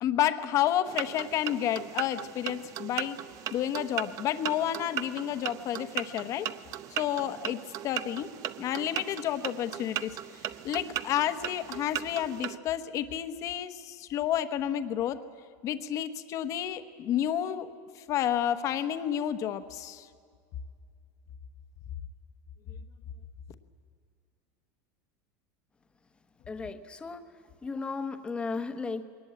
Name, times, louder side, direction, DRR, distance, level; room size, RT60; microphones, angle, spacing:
voice 1, 0.0-3.2 3.5-6.5 6.9-8.3 8.6-10.1 10.6-15.2 15.6-17.7 17.9-20.1 22.7-22.8, left 11 dB, 40° left, 10 dB, 1.1 m, -30 dB
sound 1, 0.9-12.6, right 12 dB, 40° right, 0.7 m, -38 dB
voice 2, 26.5-27.2 27.6-29.0, left 4 dB, 10° left, 8 dB, 1.1 m, -35 dB
21.5 x 18.5 x 9.0 m, 2.1 s
supercardioid pair, 150°, 9 cm